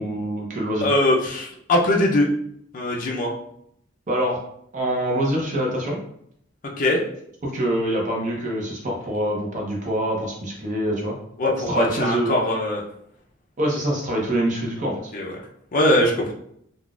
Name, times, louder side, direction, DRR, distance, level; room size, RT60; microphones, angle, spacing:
voice 1, 0.0-0.9 4.1-4.4 4.7-6.0 7.4-11.1 11.7-12.3 13.6-15.1, right 1 dB, 40° right, -2 dB, 0.7 m, -25 dB
voice 2, 0.8-2.3 2.7-3.3 6.8-7.0 11.4-12.8 15.1-15.4 15.7-16.3, left 1 dB, 40° left, -2 dB, 0.5 m, -21 dB
3.8 x 2.4 x 2.3 m, 0.71 s
head